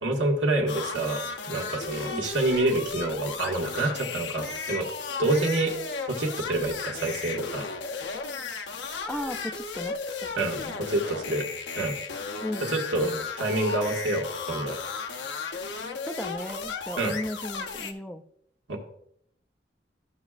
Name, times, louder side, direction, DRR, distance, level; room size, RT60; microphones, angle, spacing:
voice 1, 0.0-4.9 5.2-5.7 6.1-7.7 10.4-11.5 11.7-11.9 12.6-13.1 13.4-14.8 17.0-17.1 18.7-18.9, right 2 dB, 90° right, 1 dB, 1.6 m, -27 dB
sound 1, 0.7-17.9, left 5 dB, 75° left, 0.7 m, -35 dB
voice 2, 9.0-10.3 10.6-10.8 12.4-13.3 16.0-18.2, left 1 dB, 5° left, 8 dB, 0.4 m, -36 dB
13.5 x 6.0 x 2.4 m, 0.70 s
head